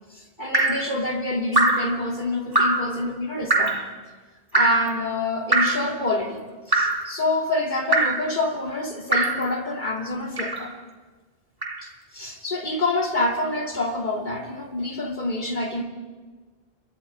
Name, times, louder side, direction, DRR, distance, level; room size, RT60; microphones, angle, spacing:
voice 1, 0.1-3.8 4.5-6.4 6.7-10.7 11.8-15.8, left 2 dB, 50° left, 1 dB, 2.8 m, -27 dB
Drip, 0.5-0.9 1.5-1.9 2.5-2.9 3.5-3.8 4.5-4.9 5.5-5.9 6.7-7.1 7.9-8.2 9.1-9.4 10.4-10.7 11.6-11.8, right 2 dB, 20° right, 1.8 m, -21 dB
27.5 x 22.5 x 4.5 m, 1.4 s
omnidirectional pair, 1.1 m